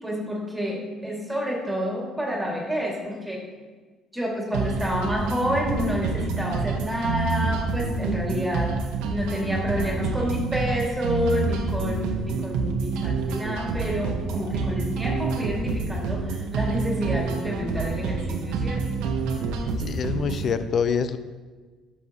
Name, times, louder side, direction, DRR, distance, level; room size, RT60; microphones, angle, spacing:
voice 1, 0.0-3.4 4.1-8.8 9.1-18.8, equal, 10° right, -2 dB, 2.1 m, -29 dB
sound 1, 4.5-20.5, right 4 dB, 85° right, 0.9 m, -28 dB
voice 2, 19.8-21.2, left 6 dB, 50° left, 11 dB, 0.5 m, -25 dB
11.0 x 6.3 x 2.9 m, 1.4 s
supercardioid pair, 85°, 0 cm